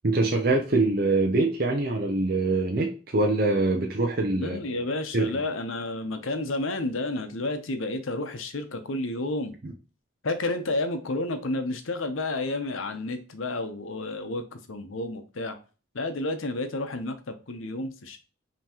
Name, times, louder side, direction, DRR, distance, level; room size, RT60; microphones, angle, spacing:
voice 1, 0.0-4.8 5.1-5.3 9.6-9.7, right 2 dB, 45° right, 1 dB, 0.6 m, -24 dB
voice 2, 4.4-9.5 10.2-15.5 15.9-18.2, left 2 dB, 80° left, 8 dB, 0.8 m, -31 dB
5.5 x 3.0 x 2.9 m, 0.36 s
head